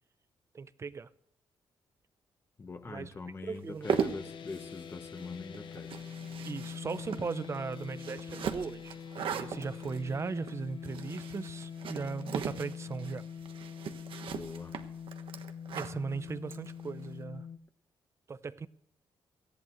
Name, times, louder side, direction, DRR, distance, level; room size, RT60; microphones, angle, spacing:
voice 1, 0.5-1.1 2.9-3.1 3.4-4.0 6.4-13.3 15.7-17.5 18.3-18.7, right 5 dB, 30° right, 0.6 m, -38 dB
voice 2, 2.6-5.9 14.3-14.7, left 3 dB, 25° left, 1.1 m, -43 dB
sound 1, 3.6-17.1, right 8 dB, 75° right, 1.3 m, -39 dB
sound 2, 3.8-17.6, left 7 dB, 60° left, 1.1 m, -44 dB
18.5 x 14.5 x 3.1 m
wide cardioid pair, 135°, 9 cm